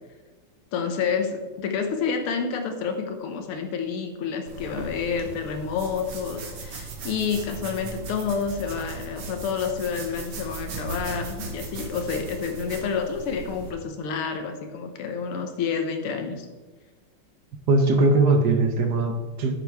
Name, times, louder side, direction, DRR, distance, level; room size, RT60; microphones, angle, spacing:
voice 1, 0.7-16.5, left 6 dB, 85° left, 6 dB, 2.0 m, -29 dB
sound 1, 4.5-13.7, right 3 dB, 85° right, 2.3 m, -37 dB
voice 2, 17.7-19.5, right 2 dB, 60° right, 6 dB, 1.2 m, -20 dB
11.0 x 7.8 x 3.5 m, 1.4 s
omnidirectional pair, 2.4 m